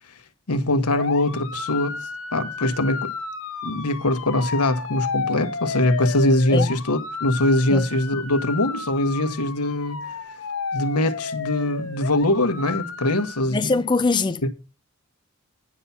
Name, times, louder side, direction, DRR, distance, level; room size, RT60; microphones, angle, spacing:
voice 1, 0.5-3.1 3.6-10.1 10.7-13.8 14.4-14.5, left 1 dB, 90° left, 1.2 m, -22 dB
sound 1, 0.9-13.4, left 5 dB, 60° left, 1.0 m, -32 dB
voice 2, 13.5-14.4, left 3 dB, 20° left, 0.4 m, -22 dB
9.8 x 5.8 x 5.6 m
head